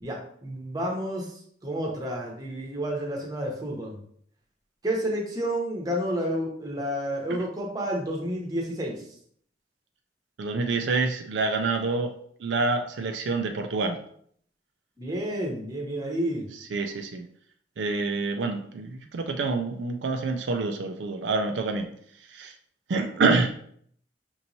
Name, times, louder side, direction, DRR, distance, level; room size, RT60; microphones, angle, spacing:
voice 1, 0.0-4.0 4.8-9.0 15.0-16.4, equal, 20° right, -1 dB, 0.8 m, -30 dB
voice 2, 10.4-12.1 12.4-14.0 16.6-17.3 17.8-21.9 22.3-22.5 22.9-23.5, right 3 dB, 85° right, 4 dB, 0.4 m, -27 dB
5.4 x 3.0 x 2.7 m, 0.63 s
head